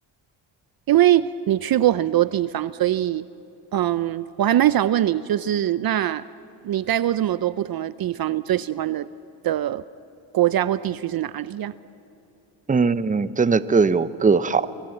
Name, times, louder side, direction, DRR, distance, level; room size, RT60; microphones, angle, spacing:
voice 1, 0.9-3.2 3.7-6.2 6.6-9.1 9.4-9.8 10.3-11.7, right 12 dB, 50° right, 16 dB, 0.6 m, -22 dB
voice 2, 12.7-14.7, right 4 dB, 15° right, 15 dB, 0.8 m, -20 dB
29.0 x 23.5 x 7.9 m, 2.9 s
cardioid pair, 95°, 47 cm